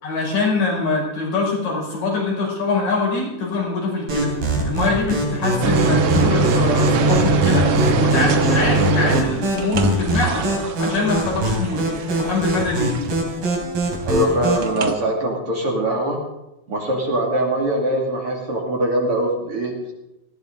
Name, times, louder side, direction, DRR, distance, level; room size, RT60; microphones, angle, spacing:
voice 1, 0.0-4.3 4.7-10.5 10.8-11.9 12.2-12.9, left 3 dB, 70° left, -3 dB, 6.9 m, -23 dB
sound 1, 4.1-14.7, right 1 dB, 85° right, 5.4 m, -23 dB
sound 2, 5.6-13.3 14.6-15.0, right 3 dB, 65° right, 1.6 m, -21 dB
voice 2, 14.1-16.2 16.7-19.9, right 1 dB, 40° right, -1 dB, 3.1 m, -22 dB
19.5 x 15.0 x 3.9 m, 0.92 s
omnidirectional pair, 4.0 m